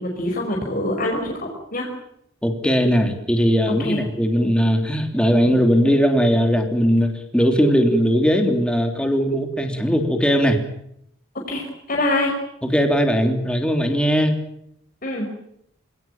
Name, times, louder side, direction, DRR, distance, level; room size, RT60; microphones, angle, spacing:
voice 1, 0.0-1.9 3.8-4.0 5.5-5.6 11.5-12.3 15.0-15.3, left 1 dB, 45° left, 1 dB, 5.3 m, -25 dB
voice 2, 2.4-10.6 12.6-14.3, equal, 5° left, 5 dB, 3.2 m, -19 dB
27.5 x 18.0 x 9.1 m, 0.76 s
head